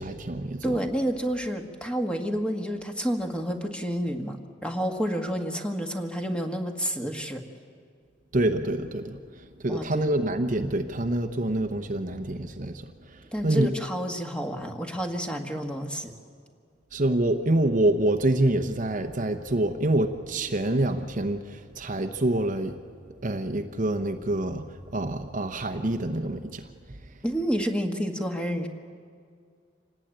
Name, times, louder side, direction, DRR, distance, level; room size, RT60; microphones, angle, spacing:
voice 1, 0.0-0.8 8.3-9.2 9.6-12.7 13.4-13.7 16.9-22.7 23.2-24.6 24.9-26.6, right 1 dB, 40° right, 7 dB, 0.9 m, -26 dB
voice 2, 0.6-7.4 9.7-10.1 13.3-16.1 27.2-28.7, equal, 5° left, 3 dB, 1.5 m, -29 dB
26.5 x 18.5 x 8.9 m, 2.2 s
head